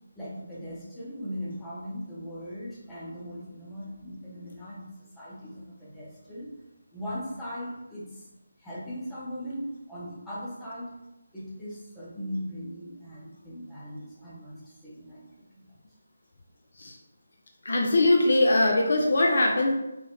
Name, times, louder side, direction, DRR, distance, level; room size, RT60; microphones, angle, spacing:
voice 1, 0.2-6.5 6.9-8.3 8.6-10.9 11.3-15.7, equal, 5° left, -9 dB, 0.7 m, -39 dB
voice 2, 17.7-19.7, left 2 dB, 55° left, 1 dB, 0.3 m, -21 dB
3.2 x 2.1 x 2.8 m, 0.97 s
figure-of-eight pair, 155°, 0 cm